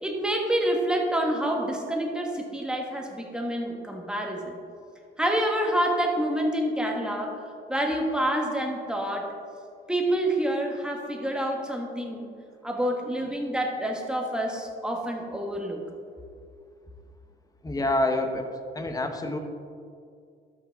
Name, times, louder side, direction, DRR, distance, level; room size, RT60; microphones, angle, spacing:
voice 1, 0.0-4.5 5.2-7.4 7.7-9.3 9.9-12.3 12.6-15.8, right 1 dB, 5° right, 1 dB, 1.5 m, -27 dB
voice 2, 17.6-18.5 18.7-19.4, left 2 dB, 20° left, 6 dB, 0.9 m, -27 dB
12.5 x 6.0 x 3.6 m, 2.3 s
cardioid pair, 90°, 20 cm